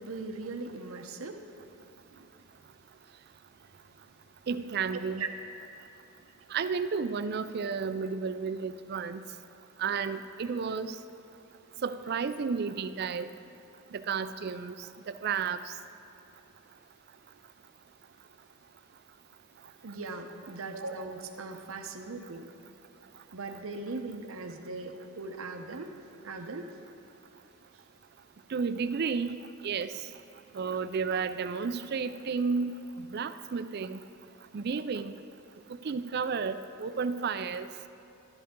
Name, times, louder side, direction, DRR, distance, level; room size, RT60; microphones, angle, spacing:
voice 1, 0.0-1.4 2.1-2.3 4.9-5.3 19.8-22.5 23.3-26.0 26.2-26.7, right 3 dB, 75° right, 5 dB, 0.8 m, -39 dB
voice 2, 4.5-5.2 6.5-9.2 9.8-11.0 11.8-13.3 13.9-14.7 15.1-15.6 28.5-29.4 29.6-29.9 30.5-34.0 34.5-35.1 35.8-37.7, right 5 dB, 50° right, 12 dB, 0.4 m, -32 dB
12.5 x 11.0 x 3.7 m, 2.9 s
head